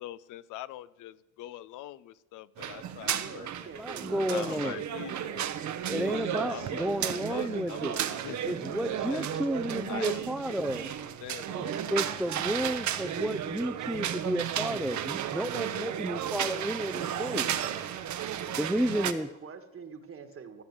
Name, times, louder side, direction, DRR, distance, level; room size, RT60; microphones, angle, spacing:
voice 1, 0.0-3.5 4.3-5.5 5.9-9.5 9.9-10.9 11.2-12.6, left 14 dB, 85° left, 0.5 m, -44 dB
sound 1, 2.6-19.1, right 10 dB, 70° right, 0.9 m, -33 dB
voice 2, 3.0-4.6 18.4-20.6, right 6 dB, 50° right, 1.5 m, -46 dB
voice 3, 3.8-4.8 5.8-8.0 8.4-10.9 11.5-11.6 11.9-17.5 18.6-19.3, equal, ahead, 0.4 m, -32 dB
14.0 x 7.0 x 7.5 m
cardioid pair, 90°, 30 cm